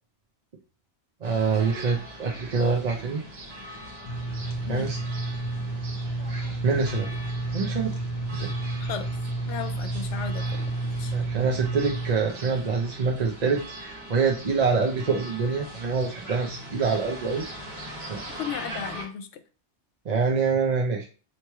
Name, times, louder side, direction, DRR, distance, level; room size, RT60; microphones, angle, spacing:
voice 1, 1.2-3.2 4.7-5.0 6.6-7.1 7.5-7.9 8.3-8.5 11.1-17.4 18.0-18.3 20.1-21.1, right 5 dB, 45° right, 0 dB, 0.5 m, -25 dB
sound 1, 1.2-19.0, right 1 dB, 65° right, 1.4 m, -41 dB
sound 2, 4.0-12.1, right 2 dB, 50° left, 0.5 m, -31 dB
voice 2, 8.8-9.2 9.5-11.1 18.3-19.3, left 8 dB, 80° left, 8 dB, 0.9 m, -35 dB
3.0 x 2.9 x 4.5 m, 0.36 s
omnidirectional pair, 1.2 m